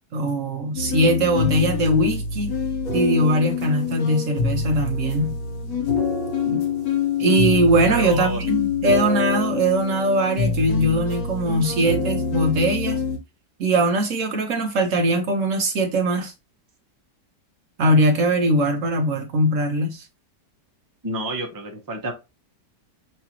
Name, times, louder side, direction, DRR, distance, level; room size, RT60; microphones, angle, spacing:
voice 1, 0.1-2.5 2.9-5.4 6.5-6.6 7.2-13.0 13.6-16.3 17.8-20.0, right 1 dB, 60° right, 0.9 m, -21 dB
sound 1, 0.8-13.2, left 5 dB, 60° left, 1.3 m, -25 dB
voice 2, 7.9-8.4 21.0-22.1, right 2 dB, 35° right, 0.3 m, -29 dB
5.6 x 2.4 x 2.8 m
omnidirectional pair, 1.9 m